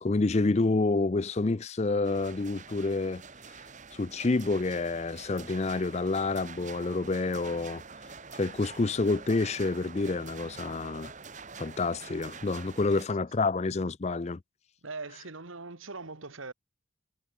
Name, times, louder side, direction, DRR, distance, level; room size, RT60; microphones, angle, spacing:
voice 1, 0.0-3.2 3.9-7.8 8.3-11.1 11.6-14.4, left 3 dB, 30° left, 0.5 m, -28 dB
sound 1, 2.0-13.0, right 5 dB, 35° right, 1.6 m, -46 dB
voice 2, 14.8-16.5, right 3 dB, 80° right, 1.8 m, -41 dB
head